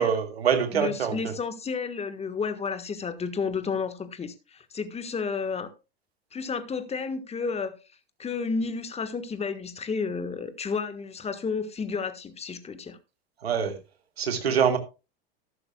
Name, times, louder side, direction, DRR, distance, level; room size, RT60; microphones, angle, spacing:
voice 1, 0.0-1.4 13.4-13.8 14.2-14.8, right 7 dB, 85° right, 2.1 m, -25 dB
voice 2, 0.7-5.7 6.3-7.7 8.2-13.0, left 5 dB, 20° left, 1.4 m, -31 dB
13.5 x 11.5 x 2.3 m
hypercardioid pair, 85°, 31 cm